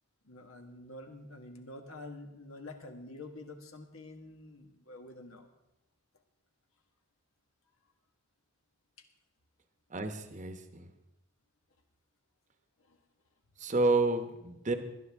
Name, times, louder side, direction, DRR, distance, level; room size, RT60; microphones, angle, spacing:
voice 1, 0.2-5.5 12.8-13.0, left 2 dB, 80° left, 5 dB, 1.6 m, -48 dB
voice 2, 9.9-10.9 13.6-14.8, right 2 dB, 35° right, 7 dB, 0.9 m, -30 dB
20.0 x 11.0 x 3.6 m, 0.91 s
head